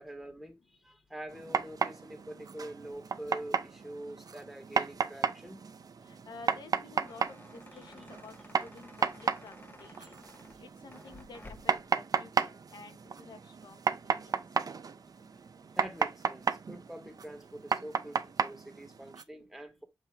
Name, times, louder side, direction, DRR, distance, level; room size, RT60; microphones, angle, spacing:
voice 1, 0.0-5.6 8.8-9.0 15.7-19.8, right 1 dB, 5° right, 1.7 m, -45 dB
sound 1, 1.3-19.2, right 5 dB, 60° right, 0.7 m, -34 dB
voice 2, 6.0-10.2 10.6-14.3, left 4 dB, 85° left, 1.1 m, -51 dB
sound 2, 6.7-11.9, left 2 dB, 25° left, 0.9 m, -54 dB
7.4 x 2.8 x 4.7 m
wide cardioid pair, 85°, 7 cm